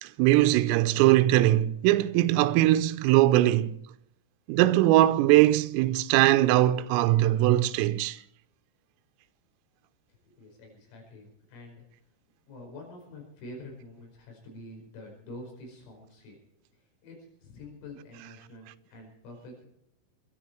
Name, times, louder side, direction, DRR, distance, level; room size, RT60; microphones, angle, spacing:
voice 1, 0.0-3.8 4.5-8.2, right 15 dB, 85° right, 3.3 m, -21 dB
voice 2, 10.3-11.8 12.5-16.4 17.0-17.2 17.4-19.7, left 1 dB, 80° left, 7.8 m, -46 dB
23.0 x 12.5 x 4.5 m
omnidirectional pair, 5.9 m